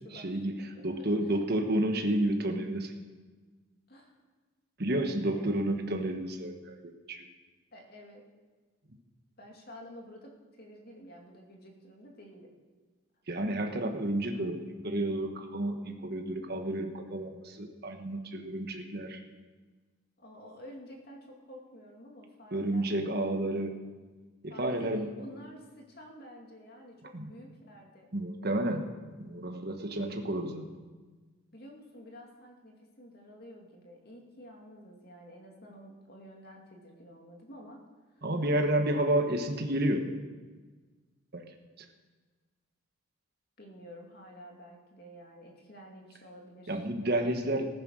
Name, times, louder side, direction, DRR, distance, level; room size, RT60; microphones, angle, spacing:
voice 1, 0.1-2.9 4.8-7.2 13.3-19.2 22.5-23.7 24.4-25.1 27.1-27.3 28.1-28.8 29.2-30.7 38.2-40.1 41.3-41.5 41.8-41.9 46.7-47.7, right 1 dB, 50° right, 4 dB, 1.4 m, -31 dB
voice 2, 7.7-8.2 9.4-10.3 10.6-12.5 20.2-22.9 24.5-28.1 31.5-37.8 38.2-38.3 43.6-46.8, equal, 45° left, 1 dB, 2.5 m, -50 dB
15.0 x 10.5 x 6.3 m, 1.4 s
head